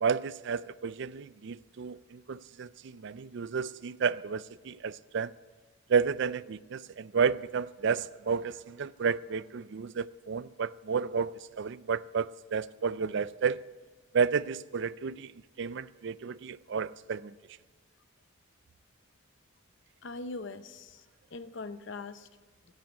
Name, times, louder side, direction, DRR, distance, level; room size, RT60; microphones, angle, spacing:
voice 1, 0.0-5.3 5.9-13.6 14.1-15.3 15.6-17.4, right 6 dB, 60° right, 0.4 m, -31 dB
voice 2, 20.0-21.0 21.3-22.3, left 3 dB, 60° left, 0.7 m, -41 dB
15.5 x 9.1 x 8.1 m
head